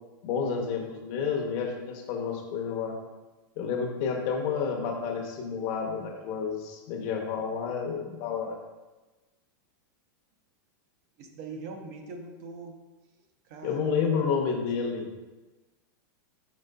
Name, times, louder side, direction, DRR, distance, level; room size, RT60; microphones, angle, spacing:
voice 1, 0.2-3.0 3.6-8.6 13.6-15.2, left 6 dB, 45° left, 2 dB, 0.7 m, -30 dB
voice 2, 11.2-12.8 13.4-14.1 14.4-14.7 15.0-15.1, right 4 dB, 50° right, 3 dB, 0.6 m, -42 dB
5.0 x 4.4 x 2.2 m, 1.2 s
supercardioid pair, 150°, 11 cm